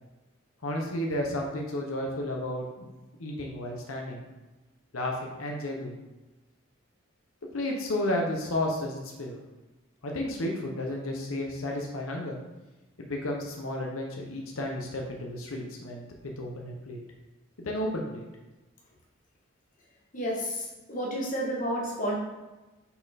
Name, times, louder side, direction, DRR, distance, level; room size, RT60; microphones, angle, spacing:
voice 1, 0.6-2.8 3.2-4.2 4.9-5.9 7.5-9.4 10.0-12.4 13.0-17.0 17.6-18.2, left 1 dB, 90° left, 0 dB, 0.9 m, -32 dB
voice 2, 20.1-22.2, equal, 40° left, -3 dB, 1.4 m, -31 dB
5.6 x 4.4 x 4.1 m, 1.1 s
head